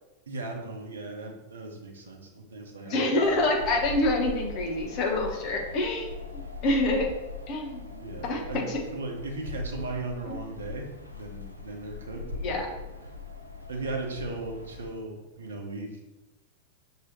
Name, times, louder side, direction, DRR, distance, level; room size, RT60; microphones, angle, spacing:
voice 1, 0.3-3.2 8.0-8.6 8.9-12.7 13.7-16.0, right 3 dB, 70° right, 2 dB, 0.8 m, -37 dB
voice 2, 2.9-6.1 6.3-7.1 7.5-8.8 12.4-12.7, left 2 dB, 40° left, 1 dB, 1.0 m, -27 dB
Wind, 3.2-14.9, left 4 dB, 85° left, 0.5 m, -40 dB
6.0 x 2.9 x 2.9 m, 1.0 s
figure-of-eight pair, 90°, 0 cm